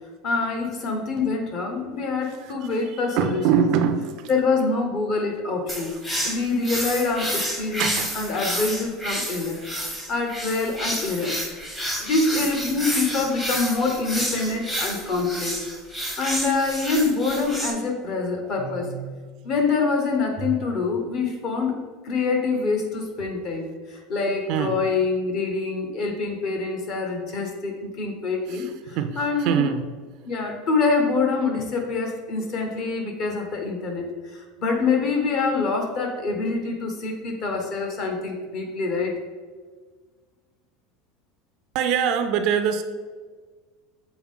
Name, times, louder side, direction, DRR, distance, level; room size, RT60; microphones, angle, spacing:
voice 1, 0.2-3.6 4.3-6.0 6.2-9.6 10.1-11.4 12.0-15.6 16.0-18.9 19.4-21.8 22.0-29.6 30.3-39.1, left 4 dB, 35° left, 3 dB, 1.0 m, -25 dB
voice 2, 2.3-4.3 7.8-8.1 16.3-16.4 18.6-19.1 20.4-20.6 24.5-24.8 28.5-29.8 41.7-42.8, right 8 dB, 45° right, 7 dB, 0.4 m, -25 dB
sound 1, 5.7-17.7, equal, 10° left, 0.9 m, -30 dB
7.1 x 4.1 x 3.7 m, 1.5 s
supercardioid pair, 170°, 0 cm